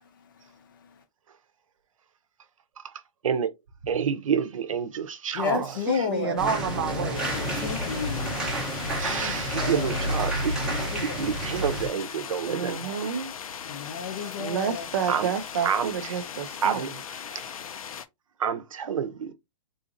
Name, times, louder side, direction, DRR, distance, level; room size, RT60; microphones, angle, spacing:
voice 1, 0.2-1.0 5.3-6.4 6.8-7.0 7.3-8.8 9.0-11.4 13.5-14.9, left 7 dB, 40° left, 0.6 m, -34 dB
voice 2, 3.9-5.7 9.0-10.5 11.0-12.9 15.1-15.3 15.6-16.2 16.6-16.9 17.3-17.4 18.4-19.3, right 7 dB, 70° right, 0.7 m, -28 dB
voice 3, 5.5-7.6 12.4-13.3 14.4-16.9, right 7 dB, 40° right, 0.4 m, -30 dB
sound 1, 6.4-11.9, equal, 5° right, 0.6 m, -30 dB
sound 2, 7.1-18.1, left 7 dB, 90° left, 0.6 m, -38 dB
3.8 x 2.5 x 2.5 m
hypercardioid pair, 170°, 17 cm